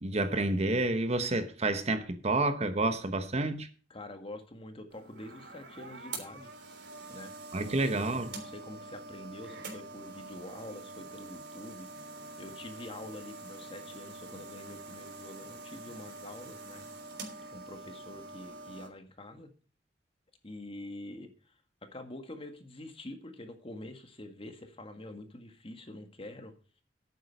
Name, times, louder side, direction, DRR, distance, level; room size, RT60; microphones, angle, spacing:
voice 1, 0.0-3.7 7.5-8.3, right 2 dB, 35° right, 1.1 m, -29 dB
voice 2, 3.9-6.5 7.1-7.3 7.6-11.9 12.4-16.9 17.5-19.5 20.4-21.6 21.8-26.5, left 1 dB, 30° left, 1.8 m, -46 dB
sound 1, 4.9-18.9, right 3 dB, 65° right, 3.5 m, -46 dB
11.0 x 9.2 x 5.3 m
head